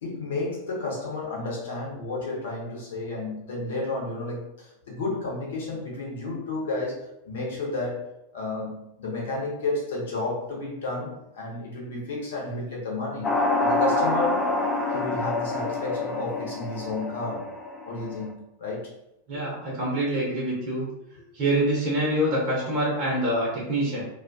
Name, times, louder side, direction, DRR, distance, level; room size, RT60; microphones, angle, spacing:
voice 1, 0.0-8.1 8.3-14.5 14.9-17.5 17.9-18.9 19.3-19.4, left 2 dB, 60° left, -3 dB, 0.9 m, -32 dB
sound 1, 13.2-18.2, left 2 dB, 25° left, 0.3 m, -27 dB
voice 2, 19.3-20.9 21.3-24.0, right 1 dB, 40° right, -5 dB, 0.9 m, -25 dB
2.3 x 2.3 x 2.5 m, 0.87 s
figure-of-eight pair, 90°, 0 cm